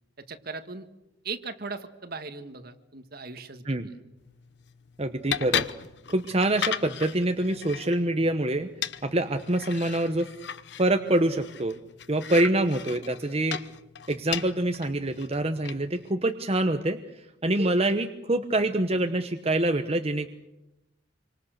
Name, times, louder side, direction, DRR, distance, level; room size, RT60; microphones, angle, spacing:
voice 1, 0.2-0.9 1.2-3.9, right 4 dB, 55° right, 8 dB, 1.9 m, -38 dB
sound 1, 4.2-16.1, left 8 dB, 65° left, 1.0 m, -37 dB
voice 2, 5.0-5.7 6.1-8.7 9.0-10.3 10.8-11.8 12.1-13.6 14.1-20.3, right 1 dB, 35° right, 7 dB, 1.1 m, -25 dB
27.0 x 25.0 x 6.7 m, 0.92 s
head